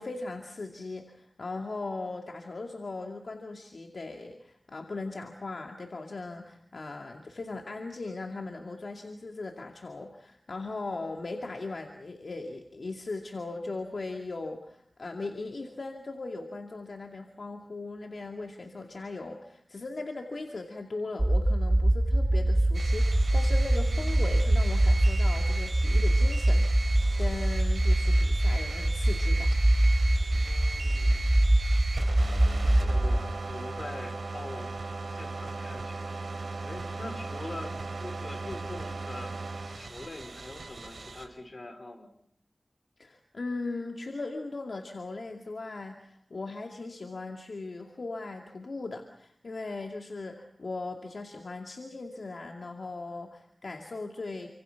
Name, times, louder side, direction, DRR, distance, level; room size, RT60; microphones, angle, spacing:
voice 1, 0.0-29.5 43.0-54.5, left 3 dB, 70° left, 3 dB, 2.4 m, -38 dB
sound 1, 21.2-33.2, right 1 dB, 30° right, 2.1 m, -24 dB
sound 2, 22.7-41.3, right 3 dB, 75° right, 4.1 m, -38 dB
voice 2, 30.2-31.5 32.4-34.7 35.1-39.3 39.8-42.1, left 2 dB, 50° left, 6 dB, 5.1 m, -44 dB
29.0 x 26.0 x 5.9 m, 0.69 s
wide cardioid pair, 60°, 0 cm